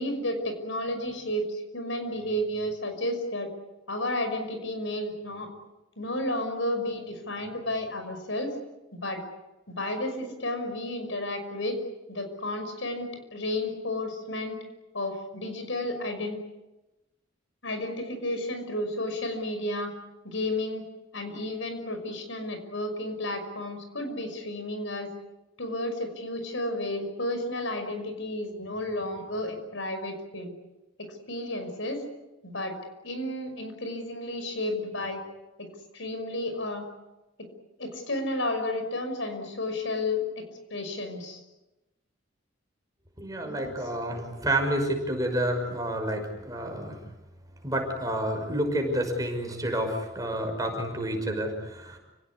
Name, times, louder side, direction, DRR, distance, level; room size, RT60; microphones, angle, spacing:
voice 1, 0.0-3.5 3.9-5.5 6.0-8.6 8.9-9.2 9.7-11.8 12.1-14.6 14.9-16.4 17.6-19.9 20.2-20.9 21.1-25.1 25.6-30.5 31.0-32.1 32.4-32.8 33.0-35.2 35.6-36.8 37.4-37.5 37.8-41.4 43.4-43.8, left 1 dB, 75° left, 7 dB, 5.9 m, -32 dB
voice 2, 43.2-47.0 47.6-52.0, right 1 dB, 20° right, 3 dB, 5.8 m, -29 dB
29.5 x 18.5 x 9.8 m, 1.0 s
head